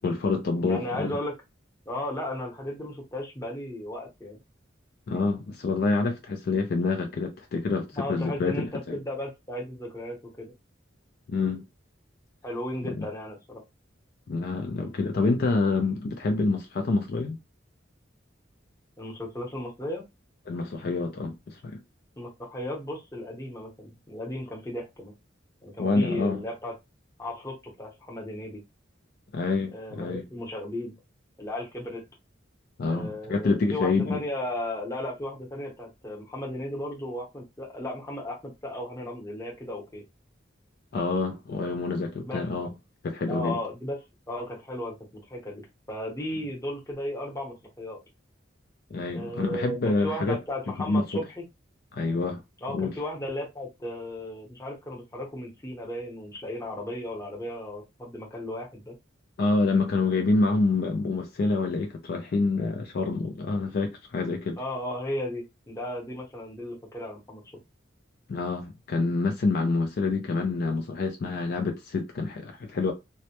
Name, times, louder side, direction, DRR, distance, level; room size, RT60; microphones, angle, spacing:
voice 1, 0.0-1.2 5.1-9.0 11.3-11.6 12.8-13.1 14.3-17.4 20.5-21.8 25.8-26.4 29.3-30.2 32.8-34.2 40.9-42.7 43.0-43.6 48.9-50.4 50.9-51.2 51.9-52.4 52.7-52.9 59.4-64.6 68.3-72.9, left 3 dB, 55° left, 0.4 m, -27 dB
voice 2, 0.6-1.3 1.9-4.4 7.9-10.5 12.4-13.6 19.0-20.0 22.2-25.1 25.6-26.7 27.2-28.6 29.7-30.9 31.4-32.0 32.9-40.0 42.2-42.4 43.3-44.0 44.3-45.0 45.3-45.6 45.9-48.0 49.1-51.4 52.6-58.9 64.6-67.4, left 1 dB, 15° left, 0.8 m, -35 dB
2.1 x 2.0 x 2.8 m
head